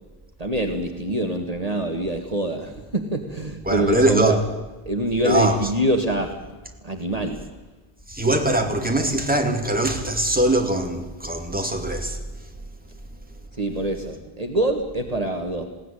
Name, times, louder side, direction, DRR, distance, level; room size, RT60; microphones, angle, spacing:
voice 1, 0.4-4.4 4.8-7.6 13.5-15.6, right 1 dB, 40° right, 4 dB, 1.7 m, -25 dB
voice 2, 3.7-4.4 5.2-5.6 8.1-12.2, right 1 dB, 10° right, 3 dB, 2.4 m, -22 dB
20.5 x 16.5 x 9.9 m, 1.2 s
omnidirectional pair, 1.0 m